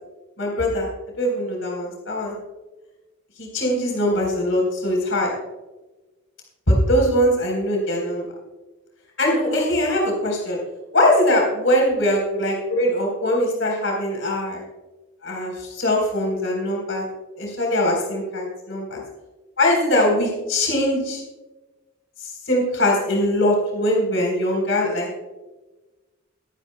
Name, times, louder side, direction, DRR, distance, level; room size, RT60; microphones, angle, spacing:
voice 1, 0.4-0.9 1.2-2.4 3.4-5.3 6.7-8.2 9.2-10.6 10.9-14.6 15.2-17.1 17.4-19.0 19.6-21.2 22.2-25.2, left 1 dB, 65° left, -1 dB, 3.9 m, -21 dB
22.0 x 10.0 x 2.2 m, 1.1 s
head